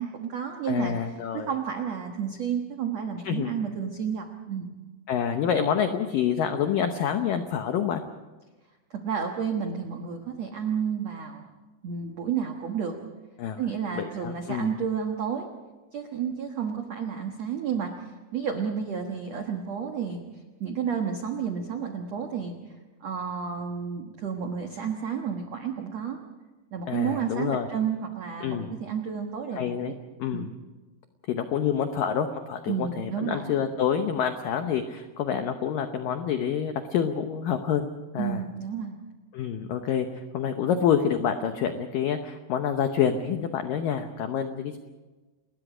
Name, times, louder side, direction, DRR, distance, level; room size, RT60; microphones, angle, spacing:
voice 1, 0.0-0.9 1.3-4.7 8.9-11.5 11.8-13.0 13.6-15.5 15.9-20.2 20.6-22.5 23.0-26.2 26.7-29.9 30.3-30.5 32.7-33.5 38.1-39.0, right 7 dB, 80° right, 4 dB, 1.5 m, -31 dB
voice 2, 0.7-1.5 3.2-3.5 5.1-8.0 13.4-13.6 14.0-14.7 26.9-27.7 28.4-28.8 29.6-29.9 30.2-30.5 31.3-37.9 38.1-38.4 39.3-40.1 40.3-44.8, left 8 dB, 85° left, 7 dB, 1.9 m, -27 dB
29.5 x 20.5 x 5.0 m, 1.2 s
omnidirectional pair, 5.4 m